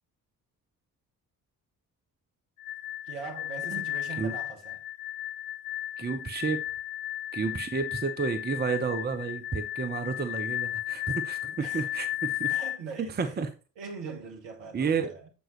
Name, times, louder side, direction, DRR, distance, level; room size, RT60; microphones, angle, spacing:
sound 1, 2.6-12.8, left 13 dB, 50° left, 0.6 m, -34 dB
voice 1, 3.1-4.8 7.4-7.7 11.6-11.9 12.5-13.4 13.8-15.3, right 5 dB, 60° right, 1.6 m, -41 dB
voice 2, 6.0-6.6 7.3-12.6 13.0-13.5 14.7-15.1, right 5 dB, 20° right, 0.8 m, -31 dB
7.6 x 5.2 x 3.1 m
figure-of-eight pair, 40°, 48 cm